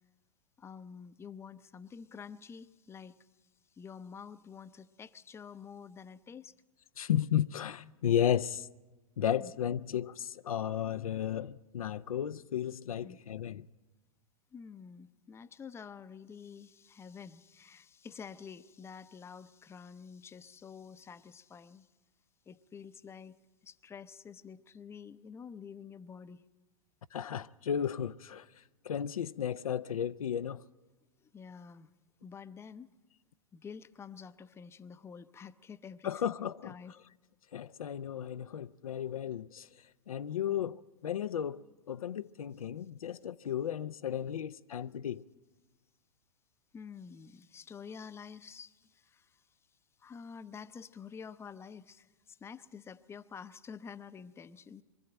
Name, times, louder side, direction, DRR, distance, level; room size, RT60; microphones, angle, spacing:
voice 1, 0.6-3.3 3.7-6.5 9.4-9.5 13.0-13.2 14.5-21.9 22.5-23.4 23.6-26.4 31.2-31.9 32.2-32.9 33.5-36.9 40.5-40.7 46.7-49.4 50.0-54.8, left 6 dB, 15° left, 0.6 m, -49 dB
voice 2, 7.0-8.7 9.2-13.7 27.1-28.5 28.8-30.6 36.0-36.7 37.5-39.7 40.1-45.2, left 9 dB, 75° left, 0.5 m, -34 dB
23.5 x 12.5 x 9.0 m
hypercardioid pair, 105°, 18 cm